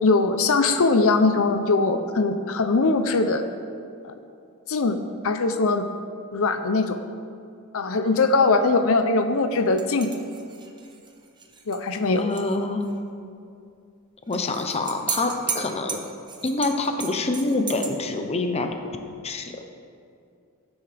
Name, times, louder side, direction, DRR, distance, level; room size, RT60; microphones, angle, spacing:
voice 1, 0.0-3.4 4.0-4.1 4.7-5.0 5.2-5.9 6.3-7.0 7.7-10.1 11.7-12.3, left 3 dB, 65° left, 8 dB, 0.6 m, -21 dB
sound 1, 9.8-12.6 12.8-12.9 14.3-17.9, right 5 dB, 20° right, 1.0 m, -35 dB
voice 2, 12.2-12.9 14.3-16.0 16.4-18.7 19.2-19.6, left 2 dB, 30° left, 5 dB, 0.8 m, -26 dB
17.0 x 9.6 x 3.4 m, 2.4 s
head